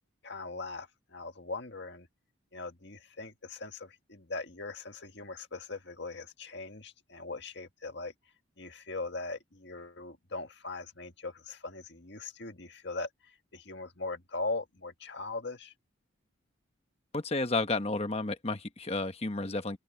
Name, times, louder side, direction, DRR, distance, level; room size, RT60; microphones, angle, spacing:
voice 1, 0.2-2.1 2.5-8.1 8.6-15.7, left 3 dB, 55° left, 1.8 m, -40 dB
voice 2, 17.1-19.8, left 2 dB, 30° left, 1.2 m, -31 dB
open air
head